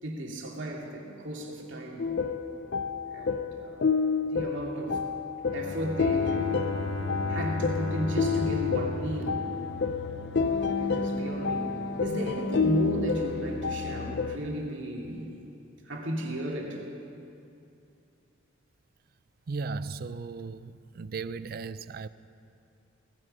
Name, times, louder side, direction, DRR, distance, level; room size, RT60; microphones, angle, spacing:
voice 1, 0.0-2.1 3.1-3.8 4.3-5.0 5.5-6.7 7.3-9.5 10.8-11.7 12.0-15.3 15.8-16.8, right 1 dB, 65° right, 2.6 m, -34 dB
sound 1, 2.0-14.4, left 5 dB, 55° left, 0.6 m, -29 dB
Bowed string instrument, 5.4-10.2, left 2 dB, 80° left, 1.2 m, -35 dB
voice 2, 19.5-22.1, right 4 dB, 50° right, 0.4 m, -36 dB
18.5 x 14.5 x 5.5 m
head